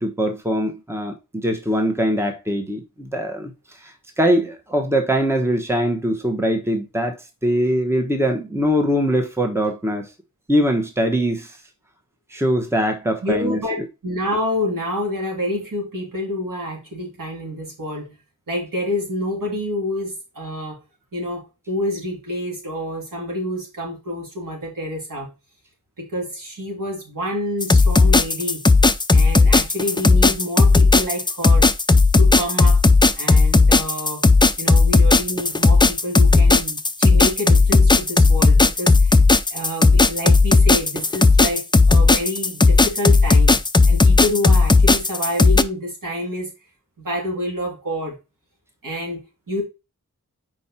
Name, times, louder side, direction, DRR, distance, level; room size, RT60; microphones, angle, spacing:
voice 1, 0.0-3.5 3.8-7.1 7.4-10.1 10.5-11.6 12.3-13.6, equal, 10° right, 1.1 m, -22 dB
voice 2, 13.2-13.8 14.0-18.1 18.5-20.8 21.1-25.3 26.0-28.6 29.1-31.7 32.2-32.8 33.1-34.2 34.6-39.2 39.5-46.5 47.0-48.1 48.8-49.6, left 1 dB, 85° right, 3.1 m, -28 dB
sound 1, 27.6-45.6, left 3 dB, 15° left, 0.4 m, -14 dB
5.2 x 4.9 x 4.2 m
wide cardioid pair, 100°, 32 cm